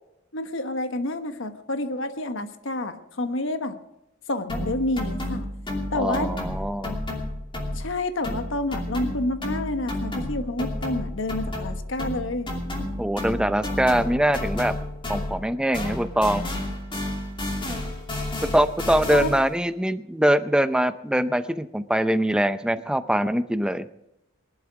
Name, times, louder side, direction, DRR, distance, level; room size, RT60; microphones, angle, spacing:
voice 1, 0.3-3.8 4.3-5.5 5.9-6.3 7.7-12.5 19.1-19.3, left 2 dB, 65° left, 9 dB, 1.3 m, -29 dB
sound 1, 4.5-8.0 8.2-15.5 15.7-19.5, left 1 dB, 25° left, 2.7 m, -31 dB
voice 2, 5.9-7.0 13.0-14.7 15.1-16.4 18.4-23.9, right 1 dB, 5° right, 12 dB, 0.6 m, -23 dB
20.0 x 11.5 x 4.8 m, 0.86 s
head